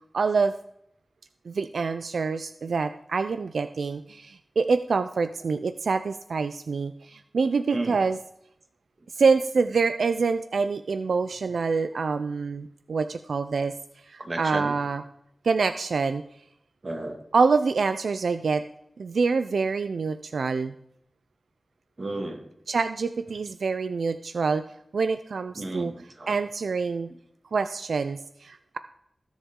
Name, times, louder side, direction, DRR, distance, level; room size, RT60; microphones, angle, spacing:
voice 1, 0.1-0.5 1.5-8.2 9.2-13.7 14.1-15.0 15.4-16.2 17.3-18.6 19.0-20.7 22.7-24.6 24.9-25.9 26.3-27.1 27.5-28.8, right 4 dB, 90° right, 11 dB, 0.4 m, -26 dB
voice 2, 14.2-14.8 16.8-17.2 22.0-22.5 25.6-26.4, right 2 dB, 45° right, 4 dB, 2.0 m, -32 dB
20.0 x 7.2 x 3.7 m, 0.74 s
wide cardioid pair, 100°, 0 cm